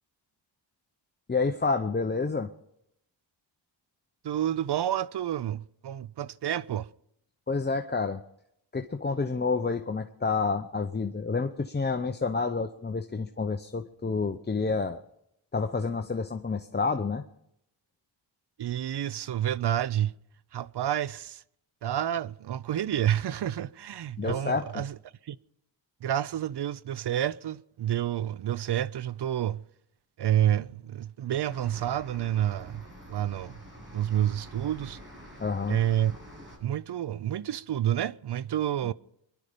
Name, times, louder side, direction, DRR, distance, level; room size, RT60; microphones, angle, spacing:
voice 1, 1.3-2.5 7.5-8.2 8.7-15.0 15.5-17.2 24.2-24.6 35.4-35.8, left 4 dB, 20° left, 0.7 m, -29 dB
voice 2, 4.2-6.9 18.6-20.1 20.5-21.4 21.8-25.0 25.2-25.4 26.0-29.6 30.2-33.6 33.9-35.0 35.7-36.2 36.6-38.9, right 11 dB, 60° right, 0.5 m, -29 dB
sound 1, 31.5-36.6, equal, 25° right, 7.6 m, -47 dB
24.0 x 11.5 x 5.1 m
wide cardioid pair, 85°, 46 cm